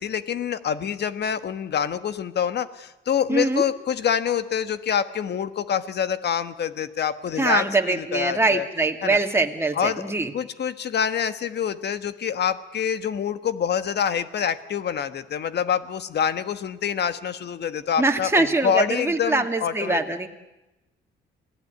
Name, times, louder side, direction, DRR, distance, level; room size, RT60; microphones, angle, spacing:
voice 1, 0.0-8.6 9.0-9.2 9.7-10.0 10.3-20.0, left 8 dB, 55° left, 12 dB, 1.5 m, -26 dB
voice 2, 3.3-3.6 7.4-10.3 18.0-20.3, right 2 dB, 10° right, 3 dB, 2.5 m, -23 dB
27.5 x 18.0 x 9.5 m, 0.98 s
cardioid pair, 90°, 20 cm